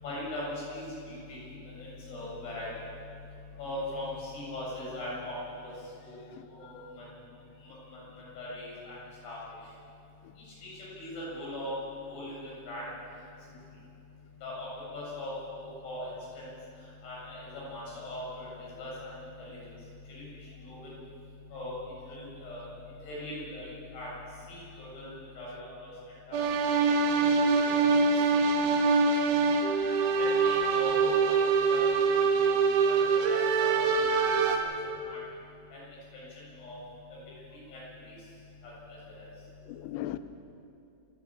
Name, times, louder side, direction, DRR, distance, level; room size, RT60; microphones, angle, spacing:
voice 1, 0.0-1.2 1.5-2.7 3.6-5.3 5.6-5.7 6.0-6.3 6.5-7.0 7.7-8.0 8.4-9.0 9.2-9.4 10.6-10.7 11.0-11.7 12.1-12.8 14.4-14.7 14.9-16.1 16.3-16.5 17.0-19.1 19.4-19.6 20.1-20.3 20.6-20.9 21.5-21.8 22.1-22.7 23.0-24.1 24.5-25.9 26.3-26.4 27.4-27.6 28.3-28.7 30.2-31.3 31.7-32.5 32.8-34.7 35.0-35.2 35.7-35.8 36.6-36.8 37.7-38.1 39.2-39.3, left 1 dB, 60° left, -5 dB, 9.5 m, -40 dB
voice 2, 6.4-6.9 34.6-34.8 39.7-40.2, left 15 dB, 85° left, 11 dB, 2.5 m, -40 dB
sound 1, 26.3-34.6, right 4 dB, 80° right, 4.0 m, -24 dB
28.5 x 11.0 x 9.0 m, 2.6 s
omnidirectional pair, 5.5 m